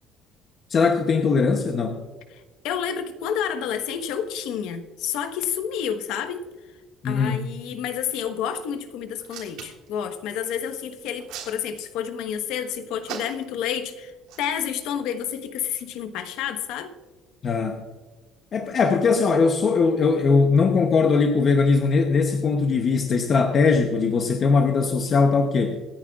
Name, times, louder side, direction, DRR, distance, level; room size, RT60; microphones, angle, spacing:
voice 1, 0.7-2.0 7.0-7.4 17.4-17.8 18.5-25.8, left 4 dB, 30° left, 4 dB, 0.8 m, -20 dB
voice 2, 2.3-6.4 7.0-14.1 14.4-16.9, left 8 dB, 75° left, 9 dB, 1.1 m, -29 dB
Hands, 9.1-9.9 10.9-12.1 13.0-13.6 14.2-14.5, right 9 dB, 80° right, 3.7 m, -38 dB
25.0 x 10.0 x 2.4 m, 1.3 s
cardioid pair, 175°, 0 cm